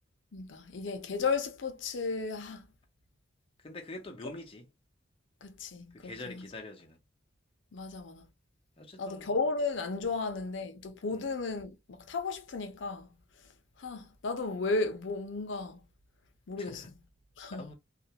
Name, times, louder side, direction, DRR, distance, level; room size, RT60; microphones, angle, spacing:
voice 1, 0.3-2.7 5.4-6.5 7.7-8.2 9.0-13.1 13.8-15.8 16.5-16.9 17.4-17.7, left 3 dB, 70° left, 0.6 m, -34 dB
voice 2, 3.6-4.7 5.9-7.0 8.8-9.3 11.1-11.3 16.6-16.9 17.5-17.7, left 2 dB, 30° left, 0.6 m, -45 dB
2.5 x 2.1 x 2.8 m
head